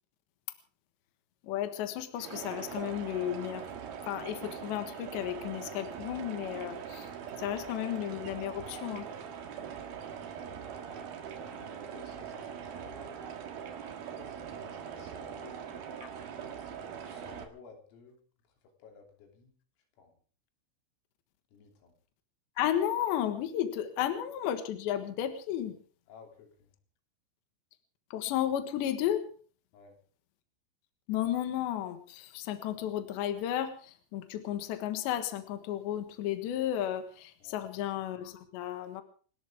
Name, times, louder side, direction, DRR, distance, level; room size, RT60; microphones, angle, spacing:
voice 1, 1.4-3.7 4.1-7.1 7.4-9.1 16.0-16.1 22.6-25.8 28.1-29.2 31.1-39.0, left 11 dB, 70° left, 7 dB, 3.5 m, -33 dB
sound 1, 2.2-17.4, right 7 dB, 60° right, 3.2 m, -42 dB
voice 2, 11.4-13.2 13.9-15.6 16.8-18.2 18.8-19.5 20.0-20.1 21.5-21.9 26.1-26.7 29.7-30.0 37.4-37.7, left 4 dB, 90° left, 2 dB, 5.8 m, -55 dB
29.5 x 12.5 x 3.6 m, 0.42 s
omnidirectional pair, 5.7 m